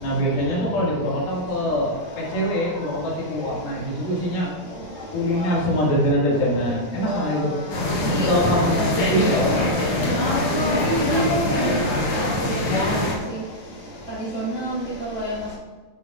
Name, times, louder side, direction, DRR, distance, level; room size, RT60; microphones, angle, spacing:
voice 1, 0.0-4.5 5.1-7.5 8.0-10.2, equal, 85° left, -4 dB, 3.8 m, -24 dB
sound 1, 7.7-13.1, left 1 dB, 55° left, 1.7 m, -23 dB
voice 2, 10.1-11.2 14.3-14.7 15.1-15.3, equal, 10° right, -8 dB, 1.2 m, -28 dB
11.0 x 7.2 x 2.4 m, 1.3 s
omnidirectional pair, 4.2 m